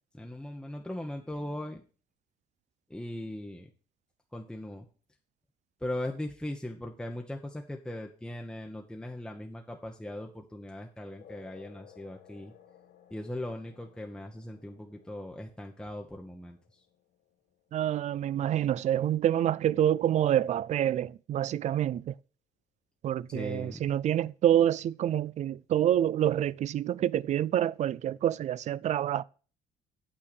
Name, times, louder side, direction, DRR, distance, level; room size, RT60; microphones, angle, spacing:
voice 1, 0.1-1.8 2.9-3.7 4.3-4.8 5.8-12.5 13.1-16.8 23.3-24.0, left 1 dB, 5° left, 0.9 m, -39 dB
sound 1, 11.2-18.2, left 9 dB, 75° left, 1.5 m, -58 dB
voice 2, 17.7-22.1 23.0-29.2, right 11 dB, 45° right, 0.4 m, -27 dB
8.8 x 4.6 x 6.8 m
cardioid pair, 110°, 17 cm